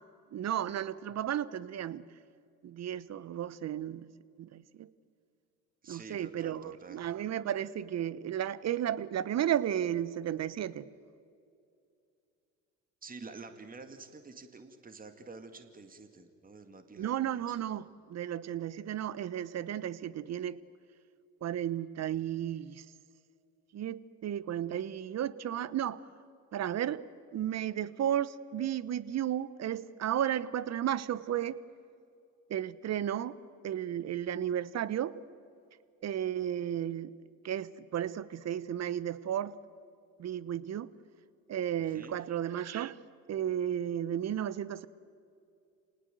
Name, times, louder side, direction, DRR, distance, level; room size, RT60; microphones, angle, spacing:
voice 1, 0.3-2.0 2.6-4.1 4.4-4.9 5.9-10.9 17.0-20.6 21.4-22.8 23.7-26.0 26.5-27.0 27.3-31.6 32.5-33.4 33.6-35.1 36.0-37.1 37.4-39.5 40.2-40.9 41.5-43.0 43.3-44.9, right 10 dB, 45° right, 18 dB, 1.1 m, -33 dB
voice 2, 5.8-7.1 13.0-17.6 41.8-42.2, right 4 dB, 20° right, 8 dB, 2.2 m, -49 dB
28.0 x 19.0 x 7.8 m, 2.5 s
hypercardioid pair, 65°, 37 cm